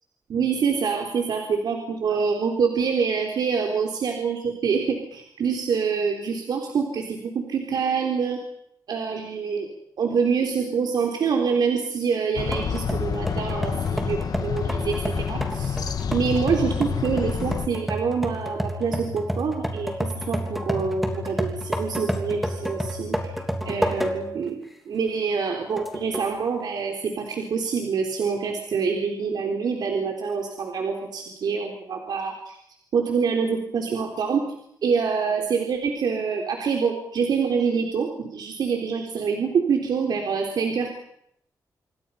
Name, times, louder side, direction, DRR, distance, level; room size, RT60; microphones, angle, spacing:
voice 1, 0.3-8.4 8.9-9.7 10.0-15.8 16.1-23.3 23.7-32.6 32.9-34.4 34.8-40.9, right 5 dB, 75° right, 2 dB, 3.8 m, -26 dB
sound 1, 12.4-17.7, left 7 dB, 65° left, 1.8 m, -28 dB
sound 2, 12.5-24.4 24.9-25.0 25.8-26.3, equal, ahead, 3.3 m, -30 dB
sound 3, 17.0-17.7 18.7-19.6 20.3-20.4 20.7-21.7, left 4 dB, 45° left, 4.8 m, -43 dB
27.0 x 25.0 x 5.7 m, 0.72 s
wide cardioid pair, 155°, 7 cm